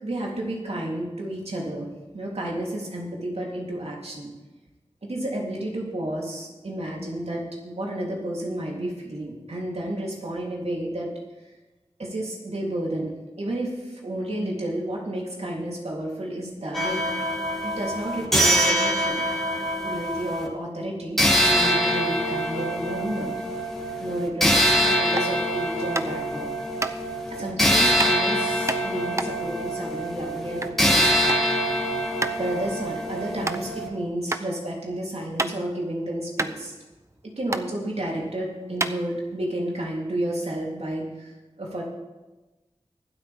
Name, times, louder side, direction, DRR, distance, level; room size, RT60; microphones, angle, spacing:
voice 1, 0.0-1.9 2.1-4.3 5.0-11.1 12.0-17.0 17.6-19.2 19.8-23.3 24.0-26.5 27.3-31.6 32.4-36.7 37.4-41.8, right 1 dB, 70° right, -3 dB, 3.7 m, -31 dB
sound 1, 16.7-20.5 21.2-33.9, equal, ahead, 2.6 m, -24 dB
sound 2, 25.2-25.4 25.9-26.3 26.8-26.9 28.0-28.2 28.7-30.8 31.1-31.5 31.8-31.9 32.2-32.4 32.9-33.0 33.4-33.6 34.3-34.4 34.9-35.8 36.1-36.2 36.4-37.2 37.5-37.7 38.3-38.4 38.7-39.5, right 2 dB, 25° right, 0.8 m, -29 dB
24.5 x 8.4 x 3.7 m, 1.1 s
wide cardioid pair, 55°, 11 cm